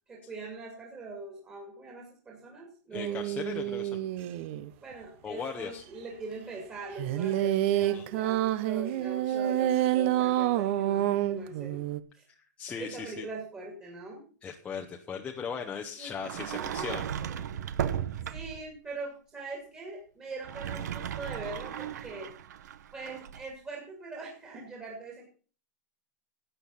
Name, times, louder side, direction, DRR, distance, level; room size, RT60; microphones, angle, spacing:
voice 1, 0.1-3.2 4.8-11.8 12.1-12.2 12.8-14.2 16.0-16.1 16.5-17.6 18.3-22.3 22.9-25.3, right 3 dB, 15° right, 0 dB, 2.5 m, -42 dB
voice 2, 2.9-4.0 5.2-5.8 7.9-8.1 9.3-9.4 12.3-13.3 14.4-17.0, left 6 dB, 15° left, 1 dB, 0.9 m, -38 dB
sound 1, 2.9-4.7 7.0-12.0, right 13 dB, 45° right, 0.8 m, -28 dB
Sliding door, 16.2-18.7 20.3-23.5, right 9 dB, 80° right, 1.0 m, -36 dB
12.0 x 8.6 x 5.6 m, 0.40 s
supercardioid pair, 160°, 9 cm